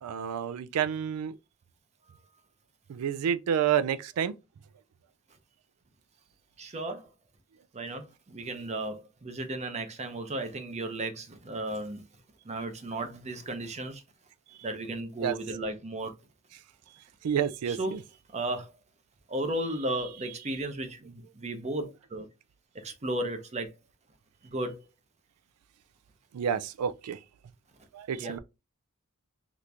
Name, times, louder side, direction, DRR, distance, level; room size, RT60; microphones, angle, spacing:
voice 1, 0.0-1.3 2.9-4.3 15.2-15.4 17.2-18.0 26.3-27.2 27.9-28.4, right 8 dB, 85° right, 0.4 m, -29 dB
voice 2, 6.6-7.1 7.7-12.0 12.4-14.0 14.6-16.1 17.7-18.0 18.3-18.7 19.3-22.3 22.7-23.7 24.4-24.9 28.1-28.4, right 1 dB, 30° right, 0.6 m, -34 dB
2.9 x 2.5 x 3.3 m
head